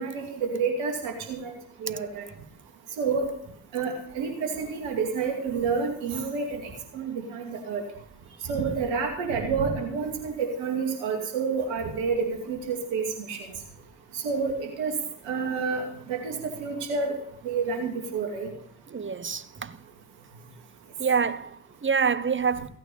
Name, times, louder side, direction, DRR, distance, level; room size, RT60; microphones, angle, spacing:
voice 1, 0.0-1.5 1.8-2.2 3.0-3.3 3.7-6.6 6.9-7.8 8.5-13.4 14.2-14.9 15.3-15.8 16.1-17.1 17.4-18.5, right 5 dB, 85° right, 2.6 m, -29 dB
voice 2, 18.9-19.8 21.0-22.7, right 6 dB, 25° right, 1.0 m, -26 dB
15.0 x 9.1 x 5.4 m
hypercardioid pair, 40°, 45 cm